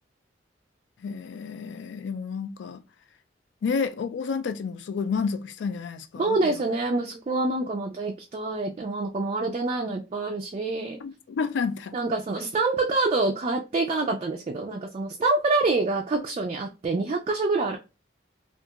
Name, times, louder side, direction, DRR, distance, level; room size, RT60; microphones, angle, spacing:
voice 1, 1.0-2.8 3.6-6.6 11.0-11.9, left 5 dB, 70° left, 0.3 m, -30 dB
voice 2, 6.2-11.0 11.9-17.8, right 3 dB, 35° right, 0.3 m, -26 dB
2.8 x 2.4 x 2.3 m
head